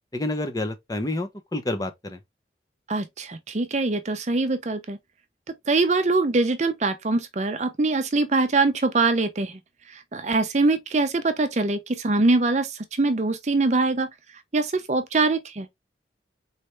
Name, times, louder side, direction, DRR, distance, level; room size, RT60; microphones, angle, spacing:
voice 1, 0.1-2.2, left 1 dB, 20° left, 0.7 m, -29 dB
voice 2, 2.9-5.0 5.7-9.6 9.9-14.1 14.5-15.7, right 3 dB, 40° right, 0.6 m, -23 dB
4.2 x 3.3 x 3.1 m
head